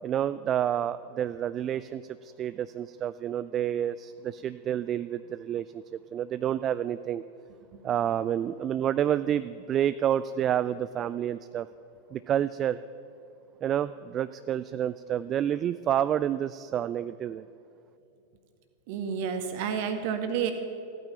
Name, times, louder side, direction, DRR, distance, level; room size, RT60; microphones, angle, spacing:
voice 1, 0.0-5.8 6.1-7.2 7.8-11.7 12.1-12.8 13.6-17.5, right 10 dB, 30° right, 14 dB, 0.3 m, -29 dB
voice 2, 18.9-20.5, right 7 dB, 50° right, 7 dB, 1.7 m, -30 dB
14.5 x 9.4 x 9.1 m, 2.7 s
figure-of-eight pair, 90°, 0 cm